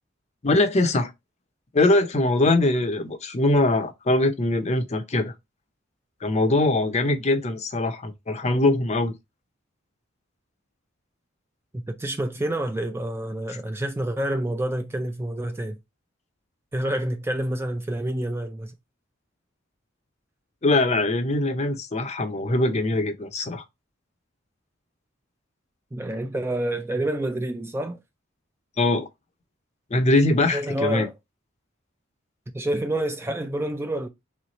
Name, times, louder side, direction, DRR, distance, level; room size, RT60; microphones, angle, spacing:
voice 1, 0.4-1.1 1.7-5.3 6.2-9.1 20.6-23.6 28.8-29.1 29.9-31.1, left 2 dB, 35° left, 0.6 m, -22 dB
voice 2, 11.7-15.8 16.7-18.7 25.9-28.0 30.5-31.1 32.5-34.1, right 1 dB, 10° right, 0.4 m, -28 dB
3.3 x 3.1 x 4.0 m
head